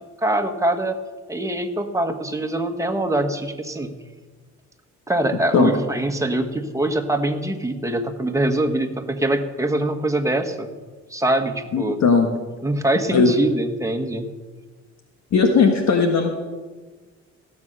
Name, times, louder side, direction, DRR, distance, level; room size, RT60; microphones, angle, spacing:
voice 1, 0.2-1.0 1.3-3.9 5.1-10.7 11.1-12.0 12.6-14.3, right 1 dB, 10° right, 5 dB, 1.5 m, -23 dB
voice 2, 11.7-12.3 13.1-13.3 15.3-16.3, left 5 dB, 65° left, 4 dB, 1.5 m, -17 dB
17.0 x 7.3 x 6.7 m, 1.4 s
cardioid pair, 90°, 30 cm